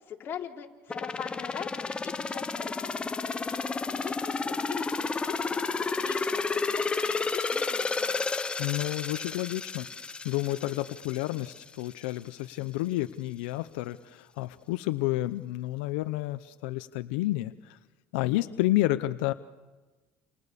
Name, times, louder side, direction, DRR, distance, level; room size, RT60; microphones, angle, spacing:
voice 1, 0.1-3.1 3.9-8.3, left 8 dB, 40° left, 1 dB, 3.6 m, -42 dB
sound 1, 0.9-11.6 12.0-12.1, left 4 dB, 20° left, 1.0 m, -31 dB
voice 2, 8.6-9.9 10.2-17.8 18.1-19.3, left 17 dB, 90° left, 11 dB, 0.8 m, -30 dB
29.0 x 29.0 x 6.9 m, 1.3 s
cardioid pair, 120°, 6 cm